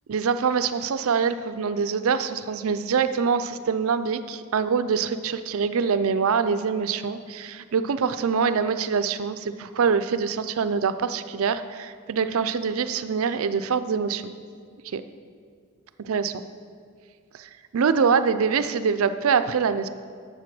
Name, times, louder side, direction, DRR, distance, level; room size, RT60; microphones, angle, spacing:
voice 1, 0.1-14.3 14.8-15.0 16.0-16.3 17.3-19.9, right 6 dB, 75° right, 12 dB, 0.4 m, -24 dB
7.6 x 7.6 x 6.0 m, 2.1 s
head